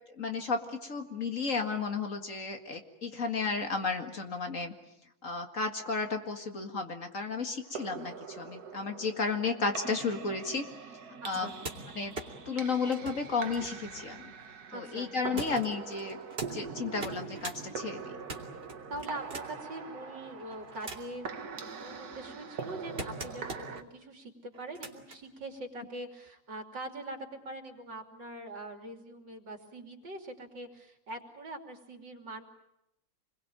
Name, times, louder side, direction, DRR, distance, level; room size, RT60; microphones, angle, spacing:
voice 1, 0.1-4.7 5.2-10.6 11.2-11.5 12.0-12.1 12.5-14.2 14.7-16.2 16.5-18.1, left 4 dB, 45° left, 5 dB, 2.3 m, -33 dB
sound 1, 7.7-23.8, right 5 dB, 60° right, 1.9 m, -43 dB
voice 2, 11.2-11.6 14.7-15.1 18.9-32.4, right 1 dB, 75° right, 4 dB, 3.5 m, -43 dB
sound 2, 11.3-14.6 15.4-16.5 16.9-17.6 18.0-19.7 20.3-21.2 21.8-23.8 24.5-25.2 26.3-26.4, right 2 dB, 35° right, 3.0 m, -43 dB
27.0 x 22.0 x 8.9 m, 0.86 s
omnidirectional pair, 2.0 m